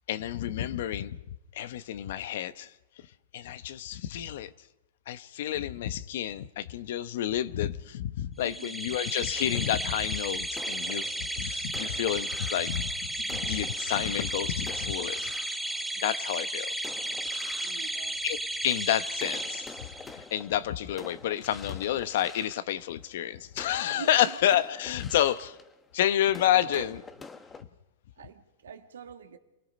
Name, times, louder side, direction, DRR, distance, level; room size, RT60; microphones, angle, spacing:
voice 1, 0.1-1.2 1.5-2.7 3.3-4.5 5.1-12.9 13.2-15.3 16.0-16.7 17.3-17.4 18.2-18.4 18.6-25.5 25.9-27.0, left 11 dB, 65° left, 0.9 m, -29 dB
sound 1, 8.4-20.3, right 1 dB, ahead, 1.0 m, -34 dB
voice 2, 8.4-8.8 11.5-11.7 15.7-16.0 17.6-18.2 24.0-24.4 26.5-26.9 28.2-29.4, right 8 dB, 85° right, 1.9 m, -45 dB
sound 2, 9.3-16.3 16.8-18.8 19.1-27.6, left 4 dB, 15° left, 1.2 m, -48 dB
28.0 x 18.0 x 5.3 m
hypercardioid pair, 125°, 0 cm